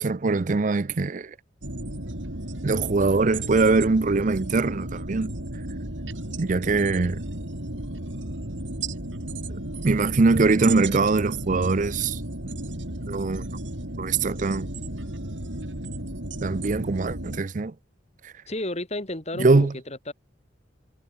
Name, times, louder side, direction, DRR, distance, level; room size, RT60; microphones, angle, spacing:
voice 1, 0.0-1.4 2.6-5.3 6.4-7.2 9.5-12.2 13.1-13.4 14.0-14.7 16.4-17.7 18.2-18.3 19.4-19.7, right 3 dB, 40° right, 0.5 m, -22 dB
sound 1, 1.6-17.4, right 1 dB, 80° right, 4.4 m, -34 dB
voice 2, 18.5-20.1, left 1 dB, 35° left, 3.0 m, -32 dB
head